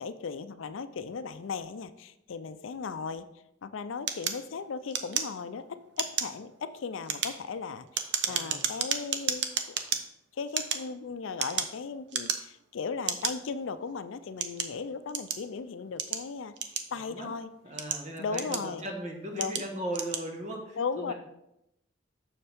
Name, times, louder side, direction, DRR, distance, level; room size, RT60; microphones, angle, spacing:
voice 1, 0.0-3.3 3.6-9.8 10.3-17.5 18.2-18.8 19.3-19.6 20.8-21.1, left 5 dB, 70° left, 12 dB, 0.4 m, -37 dB
sound 1, 4.1-5.6 5.9-6.4 6.9-10.0 10.5-11.8 12.1-12.6 13.1-13.3 14.0-15.5 16.0-17.2 17.6-18.8 19.4-19.7 19.9-20.3, right 7 dB, 55° right, 0.6 m, -32 dB
voice 2, 8.2-8.7 16.9-17.3 17.6-21.1, right 1 dB, 35° right, 1 dB, 1.3 m, -38 dB
6.8 x 6.5 x 3.5 m, 0.83 s
head